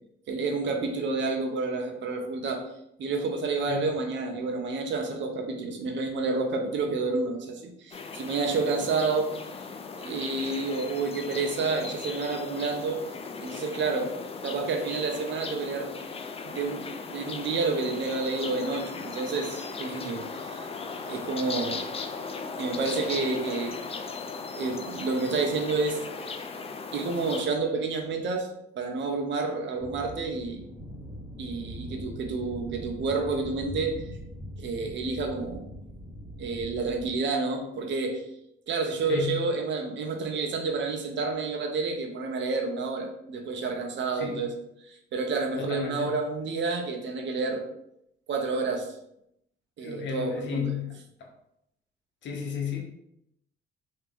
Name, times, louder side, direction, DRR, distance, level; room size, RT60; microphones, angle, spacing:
voice 1, 0.3-2.6 3.0-9.3 9.9-13.0 13.4-14.1 14.4-15.9 16.4-20.7 21.0-21.8 22.6-23.8 24.5-26.0 26.9-28.5 28.8-30.7 31.4-34.0 34.6-35.7 36.4-38.2 38.7-44.5 44.9-47.6 48.3-48.9 49.8-50.7, right 3 dB, 65° right, 3 dB, 0.8 m, -29 dB
sound 1, 7.9-27.5, left 4 dB, 30° left, 0.4 m, -38 dB
sound 2, 29.8-37.2, equal, 10° right, 1.4 m, -41 dB
voice 2, 39.1-39.4 44.2-44.4 45.6-46.1 49.8-50.9 51.2-51.3 52.2-52.8, left 7 dB, 65° left, 2 dB, 0.9 m, -33 dB
3.4 x 2.8 x 3.5 m, 0.78 s
cardioid pair, 90°, 20 cm